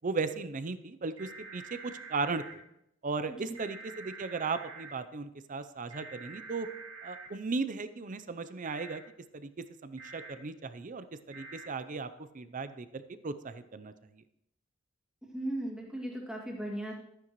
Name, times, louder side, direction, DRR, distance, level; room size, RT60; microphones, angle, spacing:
voice 1, 0.0-2.6 3.0-6.7 7.0-9.0 9.3-14.2, right 4 dB, 40° right, 12 dB, 0.6 m, -36 dB
sound 1, 1.2-2.5 3.5-4.9 5.9-7.3 8.6-9.0 10.0-10.3 11.3-11.7, right 4 dB, 70° right, 2.2 m, -46 dB
voice 2, 15.3-16.9, right 1 dB, 5° right, -2 dB, 2.3 m, -36 dB
13.0 x 9.8 x 3.1 m, 0.80 s
head